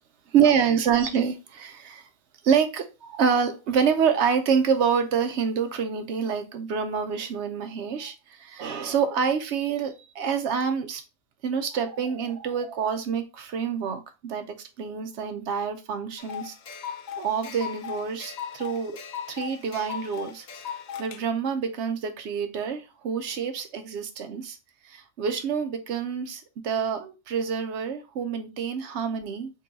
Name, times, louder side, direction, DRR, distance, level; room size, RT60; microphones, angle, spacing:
voice 1, 0.3-2.1 2.4-11.0 11.4-16.5 16.8-19.0 19.3-20.5 21.0-24.6 24.8-29.5, right 7 dB, 65° right, 0.9 m, -27 dB
sound 1, 16.2-21.2, left 8 dB, 75° left, 0.4 m, -38 dB
3.9 x 3.7 x 2.7 m
omnidirectional pair, 1.4 m